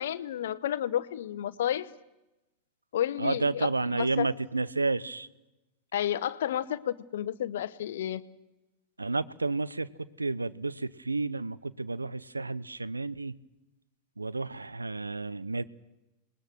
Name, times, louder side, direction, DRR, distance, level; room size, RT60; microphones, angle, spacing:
voice 1, 0.0-1.9 2.9-4.3 5.9-8.2, left 11 dB, 60° left, 14 dB, 0.9 m, -31 dB
voice 2, 3.2-5.3 9.0-9.9 10.2-13.3 14.2-15.6, right 3 dB, 80° right, 18 dB, 0.7 m, -31 dB
27.5 x 20.5 x 6.3 m, 0.98 s
figure-of-eight pair, 90°, 0 cm